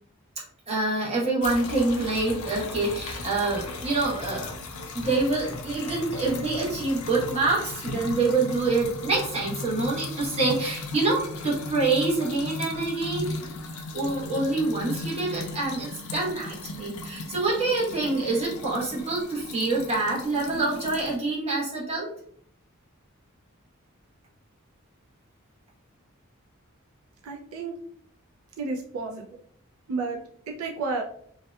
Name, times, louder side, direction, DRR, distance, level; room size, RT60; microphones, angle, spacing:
voice 1, 0.7-4.5 4.9-13.3 13.9-22.1, right 3 dB, 30° right, -5 dB, 0.9 m, -26 dB
sound 1, 1.4-21.2, left 2 dB, 85° left, 0.4 m, -37 dB
voice 2, 27.2-27.8 28.6-29.3 29.9-31.0, right 3 dB, 80° right, 1 dB, 0.4 m, -31 dB
2.7 x 2.2 x 2.2 m, 0.63 s
head